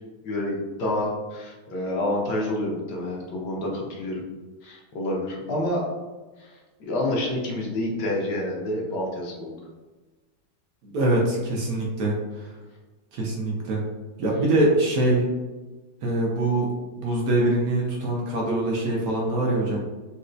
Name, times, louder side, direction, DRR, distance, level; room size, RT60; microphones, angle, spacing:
voice 1, 0.2-4.2 4.6-5.8 6.4-9.6, left 1 dB, 70° left, -2 dB, 1.2 m, -28 dB
voice 2, 10.8-12.5 13.1-13.8 14.2-15.3 16.0-16.7 17.0-19.8, right 1 dB, 65° right, -2 dB, 0.9 m, -23 dB
4.2 x 2.3 x 2.5 m, 1.2 s
omnidirectional pair, 2.1 m